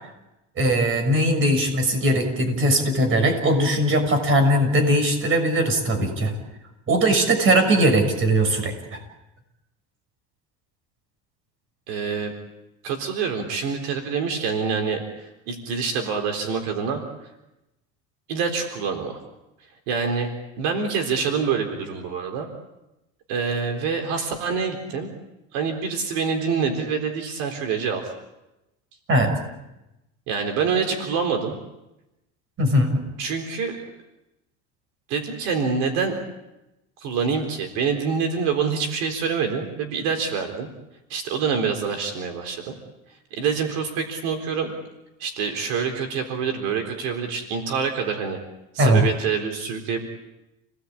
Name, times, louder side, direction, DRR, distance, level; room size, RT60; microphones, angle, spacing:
voice 1, 0.6-6.3 6.9-9.0 29.1-29.3 32.6-32.9 48.8-49.0, right 1 dB, 40° right, 7 dB, 6.4 m, -20 dB
voice 2, 11.9-12.3 12.8-17.0 18.3-19.2 19.9-20.3 20.6-22.5 23.3-25.1 25.5-28.1 30.3-31.5 33.2-33.8 35.1-36.1 37.0-40.7 41.1-42.7 43.3-44.7 45.2-48.4 48.7-50.0, right 6 dB, 80° right, 5 dB, 4.0 m, -26 dB
29.5 x 19.0 x 8.6 m, 0.96 s
cardioid pair, 140°, 32 cm